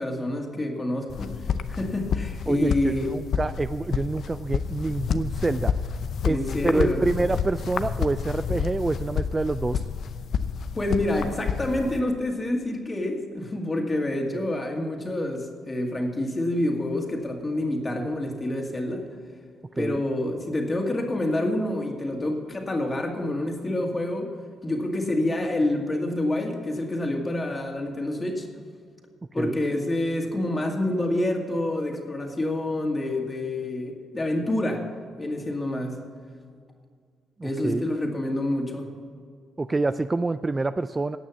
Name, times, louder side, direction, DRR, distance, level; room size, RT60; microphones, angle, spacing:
voice 1, 0.0-1.4 1.7-3.1 6.3-7.1 10.7-19.1 19.7-24.3 24.6-28.5 29.3-34.9 35.2-36.0 37.4-38.9, left 1 dB, 25° left, 2 dB, 2.3 m, -27 dB
sound 1, 1.1-12.0, left 7 dB, 60° left, 0.7 m, -29 dB
voice 2, 2.5-5.7 6.2-9.8 14.3-14.5 19.8-20.0 29.4-29.6 37.4-37.8 39.6-41.2, right 3 dB, 20° right, 12 dB, 0.3 m, -27 dB
18.0 x 6.2 x 7.2 m, 2.1 s
cardioid pair, 90°, 0 cm